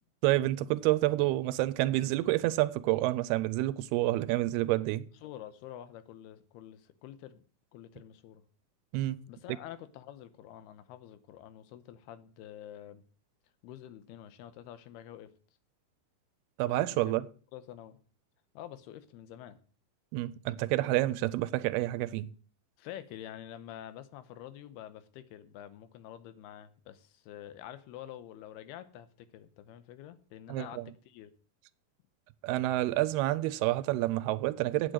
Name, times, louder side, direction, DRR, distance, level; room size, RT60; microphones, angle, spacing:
voice 1, 0.2-5.0 8.9-9.2 16.6-17.3 20.1-22.3 30.5-30.9 32.4-34.9, right 16 dB, 85° right, 2.6 m, -28 dB
voice 2, 5.2-7.4 7.7-8.4 9.3-13.0 13.6-15.3 16.6-17.1 17.5-18.0 18.5-19.6 20.8-21.2 22.8-31.3, left 11 dB, 85° left, 2.8 m, -47 dB
8.7 x 7.8 x 7.6 m
omnidirectional pair, 4.5 m